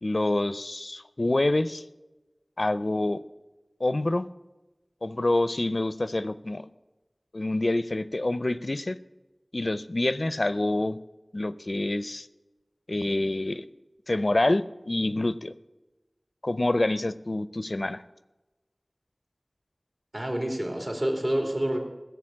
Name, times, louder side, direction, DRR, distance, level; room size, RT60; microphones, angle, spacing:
voice 1, 0.0-1.8 2.6-3.2 3.8-4.3 5.0-6.7 7.3-9.0 9.5-11.0 11.3-12.3 12.9-13.6 14.1-15.5 16.4-18.0, left 2 dB, 70° left, 15 dB, 0.5 m, -27 dB
voice 2, 20.1-21.8, right 1 dB, 55° right, 2 dB, 3.2 m, -28 dB
16.0 x 7.0 x 7.3 m, 1.1 s
wide cardioid pair, 40°, 0 cm